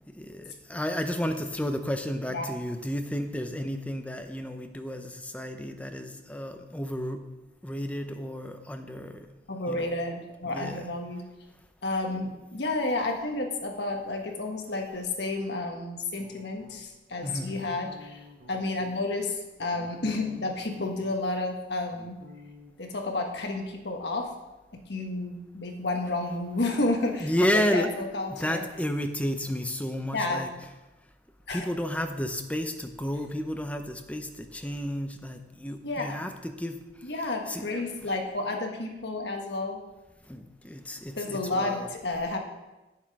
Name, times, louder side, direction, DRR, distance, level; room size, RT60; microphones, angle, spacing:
voice 1, 0.1-7.2 7.6-9.3 9.7-9.9 10.4-10.9 17.2-17.5 27.2-27.9 28.3-30.5 31.5-36.8 37.5-37.7 38.0-38.2 40.3-41.9, equal, 10° left, 6 dB, 0.6 m, -32 dB
voice 2, 9.5-11.2 11.8-22.2 22.8-24.3 24.7-27.3 27.5-28.6 30.1-30.4 31.5-31.6 35.8-36.2 37.0-39.8 41.2-42.4, left 2 dB, 65° left, 3 dB, 1.4 m, -31 dB
sound 1, 16.2-17.0 17.5-19.0 19.4-21.4 21.6-22.7, left 2 dB, 80° right, 3.0 m, -51 dB
9.0 x 7.4 x 4.8 m, 1.1 s
head